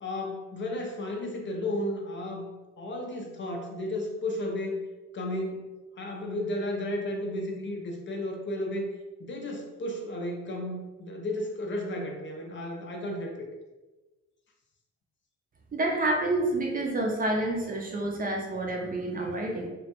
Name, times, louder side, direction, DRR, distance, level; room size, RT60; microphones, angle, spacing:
voice 1, 0.0-2.5 2.8-4.8 5.1-8.9 9.2-13.5, left 1 dB, 40° left, 1 dB, 0.4 m, -33 dB
voice 2, 15.7-19.7, right 2 dB, 30° right, 0 dB, 0.4 m, -28 dB
2.2 x 2.1 x 2.8 m, 1.2 s
cardioid pair, 90°, 30 cm